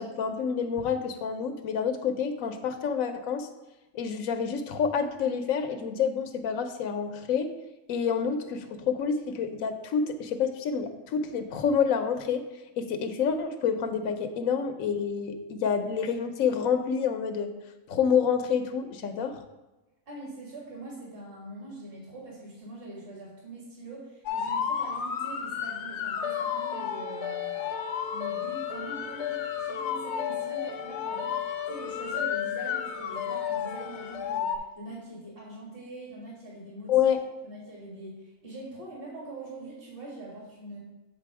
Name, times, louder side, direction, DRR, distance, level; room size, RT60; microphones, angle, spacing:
voice 1, 0.0-3.5 3.9-7.5 7.9-12.4 12.8-17.5 17.9-19.4 36.9-37.2, left 7 dB, 85° left, 8 dB, 1.1 m, -28 dB
voice 2, 20.1-27.6 28.1-36.9 37.4-40.8, right 2 dB, 45° right, -4 dB, 2.0 m, -43 dB
sound 1, 24.3-34.6, left 8 dB, 65° left, 0.8 m, -32 dB
7.5 x 4.0 x 4.7 m, 1.1 s
omnidirectional pair, 1.4 m